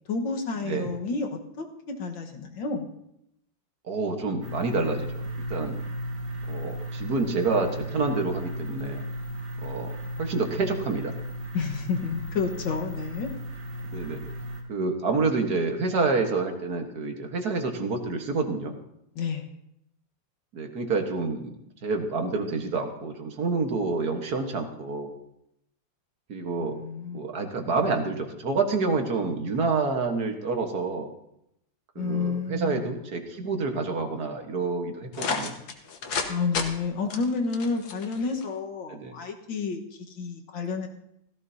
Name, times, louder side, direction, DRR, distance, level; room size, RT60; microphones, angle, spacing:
voice 1, 0.1-2.9 11.5-13.3 19.2-19.5 26.6-27.3 32.0-33.0 36.3-40.9, left 4 dB, 90° left, 3 dB, 2.1 m, -30 dB
voice 2, 3.9-5.1 5.5-5.8 6.5-9.0 9.6-11.1 13.9-14.2 14.7-18.8 20.5-21.6 21.8-25.1 26.3-26.8 27.1-31.1 32.0-35.5 38.9-39.2, right 4 dB, 55° right, 4 dB, 1.8 m, -28 dB
sound 1, 4.4-14.6, right 1 dB, 75° right, 2.8 m, -35 dB
sound 2, 35.1-36.3 36.5-36.7 37.1-38.4, left 5 dB, 60° left, 1.6 m, -30 dB
16.5 x 14.5 x 2.8 m, 0.80 s
omnidirectional pair, 2.0 m